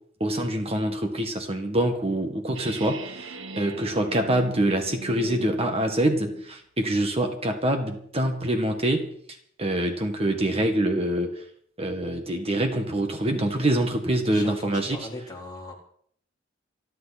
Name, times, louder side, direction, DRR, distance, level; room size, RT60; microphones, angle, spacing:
voice 1, 0.2-9.1 9.6-11.4 11.8-15.0, right 1 dB, 30° right, 4 dB, 1.8 m, -25 dB
sound 1, 2.5-6.6, right 4 dB, 85° right, 1.5 m, -40 dB
voice 2, 14.2-15.7, left 1 dB, 20° left, -2 dB, 4.1 m, -38 dB
27.5 x 11.0 x 4.3 m, 0.62 s
head